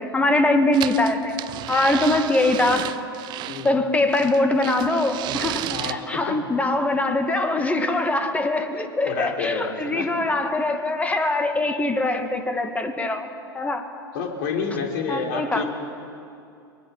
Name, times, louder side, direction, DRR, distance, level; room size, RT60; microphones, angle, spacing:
voice 1, 0.0-1.3 1.7-2.9 3.6-13.3 13.5-13.9 15.1-15.6, left 2 dB, 10° left, 7 dB, 2.0 m, -22 dB
sound 1, 0.7-3.7 4.1-5.9, right 14 dB, 35° right, 0.8 m, -32 dB
voice 2, 3.5-3.8 5.7-6.4 9.0-10.1 11.6-11.7 14.1-15.6, left 5 dB, 55° left, 2 dB, 3.8 m, -29 dB
24.5 x 22.5 x 5.9 m, 2.5 s
figure-of-eight pair, 85°, 12 cm